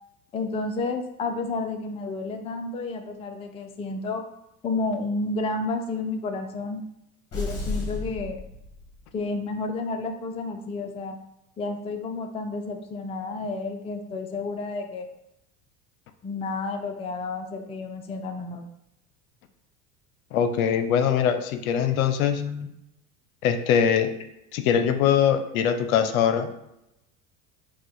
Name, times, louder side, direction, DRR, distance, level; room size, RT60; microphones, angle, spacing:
voice 1, 0.3-4.2 4.6-6.8 7.3-8.4 9.1-11.2 11.6-15.1 16.2-18.7 22.3-22.7, left 3 dB, 15° left, 5 dB, 0.4 m, -31 dB
sound 1, 7.3-9.2, left 3 dB, 35° left, 1.4 m, -33 dB
voice 2, 20.3-22.4 23.4-24.1 24.5-26.5, left 8 dB, 75° left, 9 dB, 0.6 m, -22 dB
4.8 x 2.2 x 3.9 m, 0.85 s
hypercardioid pair, 80°, 43 cm